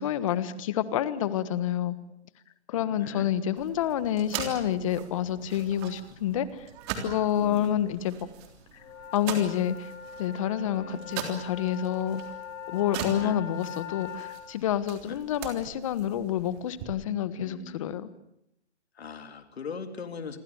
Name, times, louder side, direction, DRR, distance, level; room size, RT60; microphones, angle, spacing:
voice 1, 0.0-2.0 2.7-6.7 7.0-8.3 9.1-9.9 10.2-12.2 12.7-18.1, left 10 dB, 30° left, 15 dB, 1.4 m, -28 dB
voice 2, 2.8-3.3 7.3-7.8 10.7-11.0 13.2-13.4 15.1-15.2 17.3-17.9 19.0-20.4, left 6 dB, 65° left, 7 dB, 3.8 m, -40 dB
sound 1, 3.6-16.8, right 7 dB, 25° right, 3.4 m, -41 dB
sound 2, 8.7-14.4, left 8 dB, 10° left, 7.3 m, -41 dB
28.0 x 23.5 x 7.2 m, 0.79 s
hypercardioid pair, 155°, 34 cm